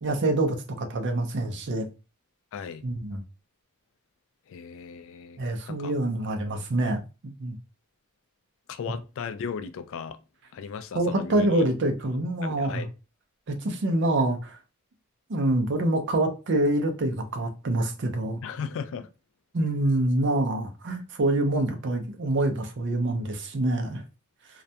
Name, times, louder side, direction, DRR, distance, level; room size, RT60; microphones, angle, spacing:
voice 1, 0.0-1.9 2.8-3.2 5.4-7.6 10.9-12.9 13.5-14.6 15.3-18.4 19.5-24.0, right 1 dB, 55° right, 0.5 m, -26 dB
voice 2, 2.5-2.8 4.5-5.4 5.7-5.9 8.7-10.2 10.5-11.6 12.4-12.9 18.4-19.1, left 6 dB, 60° left, 0.3 m, -36 dB
2.3 x 2.1 x 2.7 m
head